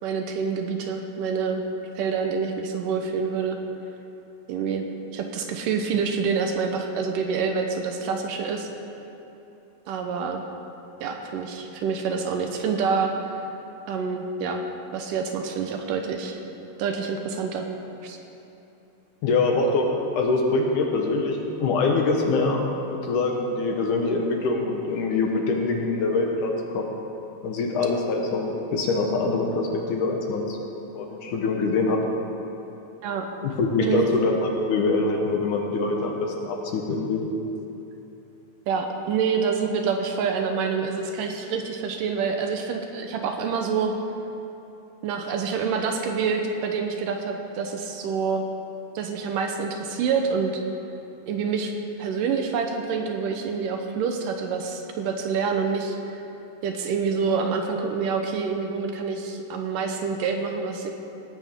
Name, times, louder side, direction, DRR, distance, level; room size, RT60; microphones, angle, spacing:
voice 1, 0.0-1.6 2.0-3.6 4.5-4.8 5.1-8.7 9.9-10.4 11.0-13.3 13.9-14.6 14.9-16.4 16.8-17.7 18.0-18.2 33.0-33.3 33.8-34.1 38.7-43.9 45.0-48.4 49.0-50.6 51.3-51.7 52.0-56.2 56.6-60.9, right 5 dB, 75° right, 4 dB, 2.3 m, -27 dB
voice 2, 19.2-19.9 20.1-22.7 22.9-26.9 27.4-30.6 30.9-32.0 33.4-37.3, left 3 dB, 70° left, 1 dB, 2.4 m, -24 dB
18.0 x 13.5 x 3.7 m, 2.9 s
omnidirectional pair, 4.1 m